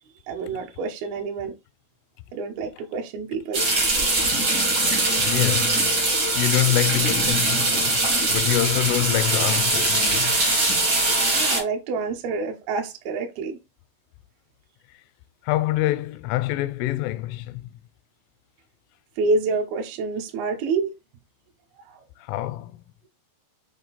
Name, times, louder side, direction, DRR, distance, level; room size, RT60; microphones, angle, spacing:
voice 1, 0.3-1.5 2.3-3.6 11.3-13.6 19.2-20.9, right 4 dB, 80° right, 2.3 m, -27 dB
sound 1, 3.5-11.6, right 2 dB, 65° right, 1.0 m, -22 dB
voice 2, 5.2-6.0 6.3-10.4 15.5-17.7 22.2-22.7, left 16 dB, 85° left, 3.1 m, -25 dB
7.8 x 3.4 x 4.1 m
omnidirectional pair, 5.7 m